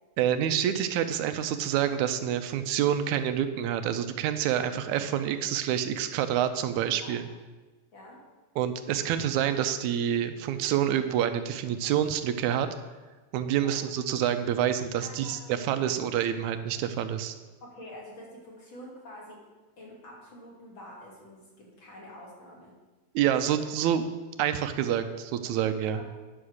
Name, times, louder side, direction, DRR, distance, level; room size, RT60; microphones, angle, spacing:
voice 1, 0.2-7.3 8.6-12.7 13.3-17.4 23.2-24.0 24.4-26.0, right 10 dB, 85° right, 9 dB, 2.0 m, -27 dB
voice 2, 7.9-8.2 13.5-13.8 15.0-15.9 17.6-19.4 19.8-22.7 25.9-26.2, left 1 dB, 45° left, -3 dB, 2.8 m, -47 dB
10.0 x 5.9 x 6.4 m, 1.2 s
omnidirectional pair, 3.3 m